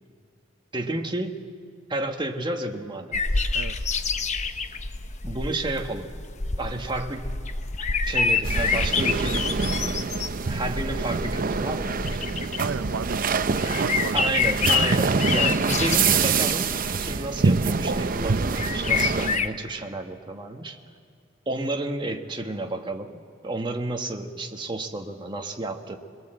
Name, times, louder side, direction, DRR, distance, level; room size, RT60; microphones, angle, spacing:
voice 1, 0.7-1.4 1.9-3.2 5.2-6.1 6.6-7.3 8.0-9.6 10.0-10.1 10.4-12.5 14.1-20.8 21.5-23.1 23.4-26.0, right 2 dB, 25° right, 4 dB, 1.4 m, -31 dB
sound 1, 3.1-19.5, left 5 dB, 40° left, 0.9 m, -28 dB
voice 2, 3.5-3.9 12.6-14.2, right 5 dB, 90° right, 13 dB, 0.6 m, -34 dB
sound 2, 8.4-19.4, right 4 dB, 45° right, 0.6 m, -25 dB
23.0 x 21.5 x 7.8 m, 2.1 s
head